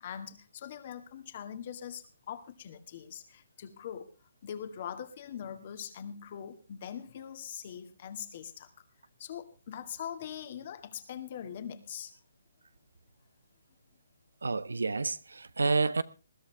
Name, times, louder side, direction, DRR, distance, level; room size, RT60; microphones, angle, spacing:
voice 1, 0.0-4.1 4.4-8.7 9.2-12.1, left 9 dB, 40° left, 2.1 m, -42 dB
voice 2, 14.4-16.0, right 3 dB, 90° right, 1.0 m, -29 dB
20.5 x 12.5 x 3.4 m
hypercardioid pair, 155°, 0 cm